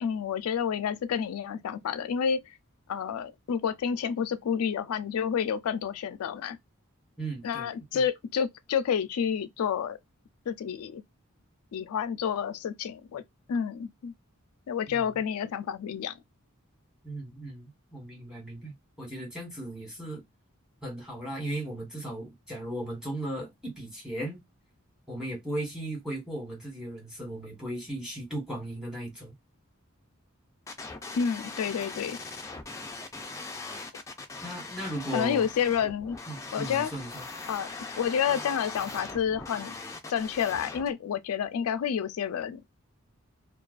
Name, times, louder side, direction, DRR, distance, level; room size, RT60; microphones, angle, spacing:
voice 1, 0.0-2.4 2.9-6.6 7.4-10.0 10.5-11.0 11.7-13.2 13.5-14.1 14.7-16.1 31.2-32.2 35.1-36.2 36.5-36.9 37.5-37.7 38.0-39.8 40.1-42.6, left 7 dB, 90° left, 0.3 m, -29 dB
voice 2, 7.2-7.7 7.9-8.0 14.9-15.1 17.0-20.2 20.8-24.4 25.1-29.3 34.4-35.5 36.3-37.2, right 1 dB, 5° right, 1.2 m, -37 dB
sound 1, 30.7-40.9, left 3 dB, 15° left, 0.3 m, -40 dB
2.3 x 2.3 x 2.3 m
head